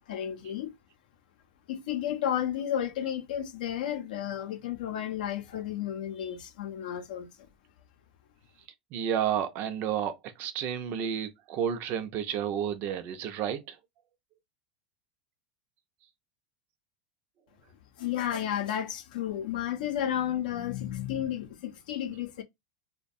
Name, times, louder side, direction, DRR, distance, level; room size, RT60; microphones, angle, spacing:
voice 1, 0.1-0.7 1.7-7.3 18.0-22.4, left 10 dB, 80° left, 0.5 m, -32 dB
voice 2, 8.9-13.8, right 9 dB, 45° right, 0.5 m, -31 dB
2.3 x 2.2 x 2.6 m
supercardioid pair, 120°, 4 cm